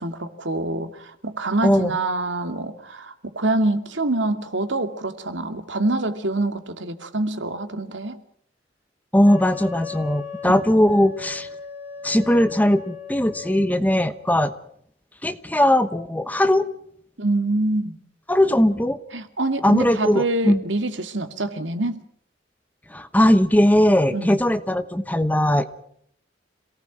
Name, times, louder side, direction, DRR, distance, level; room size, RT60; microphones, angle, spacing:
voice 1, 0.0-8.2 17.2-18.0 19.1-22.0 24.1-24.4, right 2 dB, 75° right, 8 dB, 2.4 m, -25 dB
voice 2, 9.1-11.5 12.0-14.5 15.2-16.7 18.3-19.0 19.6-20.6 22.9-25.6, left 1 dB, 10° left, 12 dB, 1.0 m, -19 dB
Wind instrument woodwind instrument, 9.2-13.7, left 6 dB, 10° right, 4.7 m, -37 dB
27.0 x 18.5 x 6.2 m, 0.68 s
head